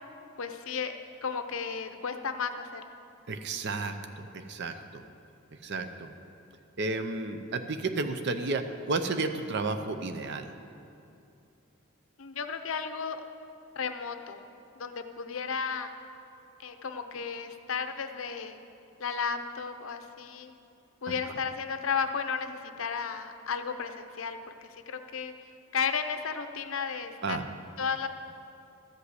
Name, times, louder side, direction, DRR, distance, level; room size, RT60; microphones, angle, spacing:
voice 1, 0.4-0.9 1.2-2.8 12.2-13.2 13.8-14.4 14.8-15.9 16.6-18.6 19.0-20.5 21.0-25.3 25.7-27.4 27.8-28.1, left 6 dB, 65° left, 8 dB, 0.6 m, -33 dB
voice 2, 3.3-5.0 5.6-6.1 6.8-10.4 27.2-27.4, right 3 dB, 50° right, 8 dB, 0.6 m, -32 dB
13.0 x 5.4 x 8.0 m, 2.6 s
head